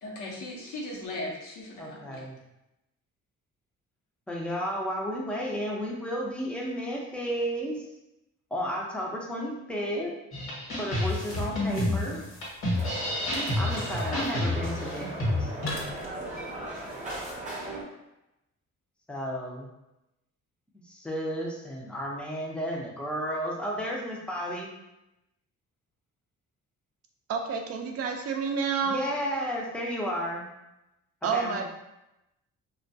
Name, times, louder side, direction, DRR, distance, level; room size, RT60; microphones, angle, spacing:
voice 1, 0.0-2.2, left 1 dB, 80° left, -3 dB, 0.8 m, -38 dB
voice 2, 1.8-2.4 4.3-7.9 8.5-10.1 10.8-12.3 13.6-15.5 19.1-19.7 20.7-24.7 28.8-30.5 31.3-31.7, equal, 5° left, -2 dB, 0.5 m, -33 dB
sound 1, 10.3-15.7, left 1 dB, 65° left, 1.1 m, -29 dB
sound 2, 10.8-17.3, left 2 dB, 45° left, 0.8 m, -45 dB
sound 3, 12.7-17.8, right 2 dB, 25° right, 0.8 m, -38 dB
voice 3, 27.3-29.1 31.2-31.7, right 5 dB, 55° right, 3 dB, 0.4 m, -29 dB
2.2 x 2.1 x 2.6 m, 0.91 s
cardioid pair, 90°, 30 cm